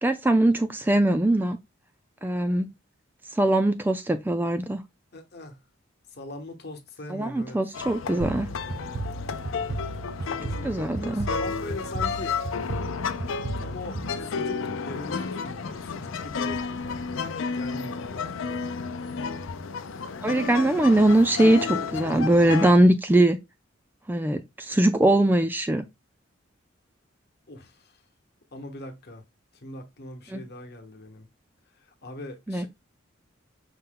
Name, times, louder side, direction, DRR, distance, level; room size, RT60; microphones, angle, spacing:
voice 1, 0.0-1.6 2.2-2.7 3.3-4.8 7.1-8.5 10.6-11.3 20.2-23.4 24.1-25.8 30.3-30.4 32.5-32.7, right 1 dB, 10° right, 0.3 m, -21 dB
voice 2, 5.1-5.5 6.2-7.6 10.3-12.3 13.6-16.6 17.5-18.6 27.5-27.7 28.5-29.2 29.6-31.3 32.0-32.7, left 2 dB, 55° left, 1.0 m, -40 dB
sound 1, 7.7-22.7, left 5 dB, 70° left, 0.5 m, -32 dB
sound 2, 8.2-14.8, right 2 dB, 60° right, 0.7 m, -35 dB
5.6 x 2.2 x 3.7 m
head